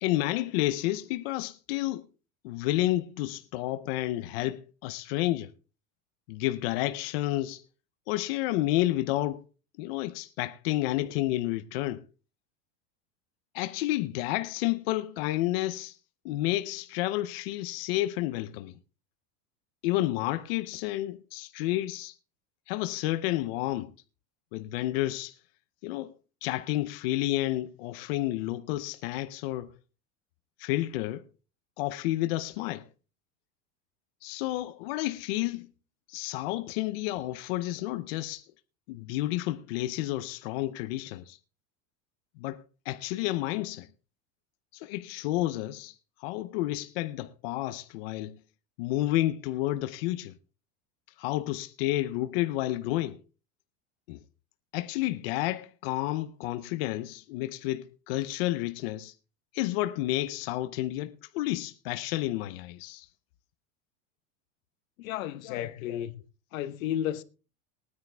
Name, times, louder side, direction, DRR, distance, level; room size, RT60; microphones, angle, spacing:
voice 1, 0.0-2.0 2.4-5.5 6.3-7.6 8.1-9.4 9.8-12.0 13.5-16.0 16.2-18.7 19.8-22.1 22.7-23.9 24.5-25.3 25.8-26.1 26.4-29.7 30.6-31.3 31.8-32.9 34.2-35.7 36.1-38.4 38.9-41.4 42.4-43.9 44.7-45.9 46.2-48.4 48.8-50.4 51.2-53.2 54.1-54.2 54.7-59.1 59.5-63.1 65.4-66.1, left 16 dB, 45° left, 0.6 m, -30 dB
voice 2, 65.0-66.2 66.5-67.2, left 11 dB, 80° left, 1.1 m, -33 dB
19.0 x 9.6 x 3.4 m
supercardioid pair, 175°, 40 cm